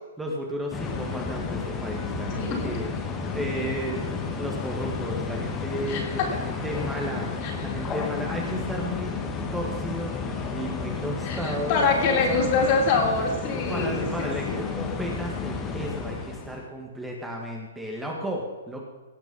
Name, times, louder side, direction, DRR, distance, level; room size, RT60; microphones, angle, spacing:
voice 1, 0.2-7.3 7.6-9.1 9.5-10.1 10.5-12.4 13.7-18.8, equal, 5° right, -1 dB, 1.8 m, -33 dB
sound 1, 0.7-16.6, left 5 dB, 20° left, 1.6 m, -32 dB
voice 2, 5.9-6.3 7.4-7.5 11.2-14.6, left 4 dB, 40° left, 0 dB, 3.4 m, -25 dB
17.5 x 6.0 x 5.5 m, 1.2 s
hypercardioid pair, 130°, 0 cm